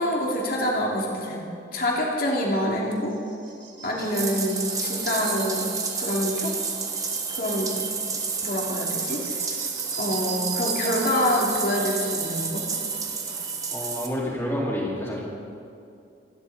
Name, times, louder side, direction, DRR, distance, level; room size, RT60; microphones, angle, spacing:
voice 1, 0.0-3.1 3.8-6.6 7.3-7.7 8.4-9.6 10.0-12.7, equal, 50° left, -2 dB, 2.8 m, -26 dB
sound 1, 2.9-14.2, right 6 dB, 75° right, 4.4 m, -42 dB
Bathtub (filling or washing), 4.0-14.1, right 5 dB, 20° right, 1.2 m, -30 dB
voice 2, 13.7-15.2, equal, 15° left, -6 dB, 3.9 m, -28 dB
27.5 x 11.5 x 4.2 m, 2.5 s
head